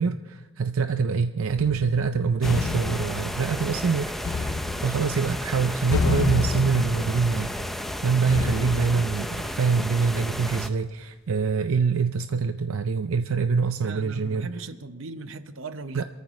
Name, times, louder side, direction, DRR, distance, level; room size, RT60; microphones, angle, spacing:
voice 1, 0.0-4.5 4.8-7.7 8.0-14.5 15.9-16.0, right 5 dB, 85° right, 9 dB, 0.5 m, -25 dB
sound 1, 1.6-10.2, left 4 dB, 90° left, 0.5 m, -31 dB
sound 2, 2.4-10.7, equal, ahead, 0.6 m, -33 dB
voice 2, 13.8-16.0, right 3 dB, 70° right, 10 dB, 0.8 m, -38 dB
26.0 x 14.0 x 3.1 m, 1.2 s
head